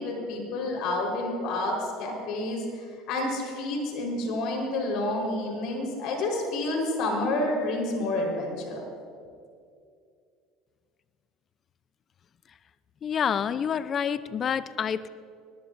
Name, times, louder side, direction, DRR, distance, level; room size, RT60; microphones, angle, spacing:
voice 1, 0.0-8.8, left 2 dB, 65° left, 0 dB, 4.4 m, -29 dB
voice 2, 13.0-15.1, left 7 dB, 40° left, 15 dB, 0.6 m, -28 dB
20.5 x 19.0 x 2.7 m, 2.4 s
supercardioid pair, 85°, 0 cm